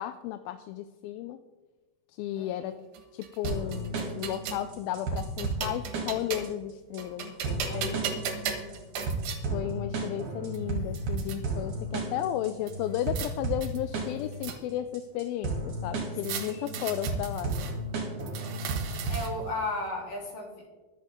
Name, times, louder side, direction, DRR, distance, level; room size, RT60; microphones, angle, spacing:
voice 1, 0.0-1.4 2.2-2.7 3.1-8.2 9.5-17.5, left 12 dB, 85° left, 10 dB, 2.4 m, -34 dB
voice 2, 2.4-2.7 7.7-8.9 12.0-12.1 16.4-16.8 19.1-20.7, left 1 dB, 65° left, -2 dB, 4.8 m, -37 dB
sound 1, 2.9-4.7 5.2-6.6 7.0-9.4 10.2-10.3 10.5-11.4 12.7-13.3 13.6-14.9 16.2-17.7 18.2-19.5, right 5 dB, 75° right, 3.0 m, -37 dB
sound 2, 3.4-19.4, right 3 dB, 60° right, 4.0 m, -34 dB
22.5 x 8.0 x 3.7 m, 1.3 s
omnidirectional pair, 4.2 m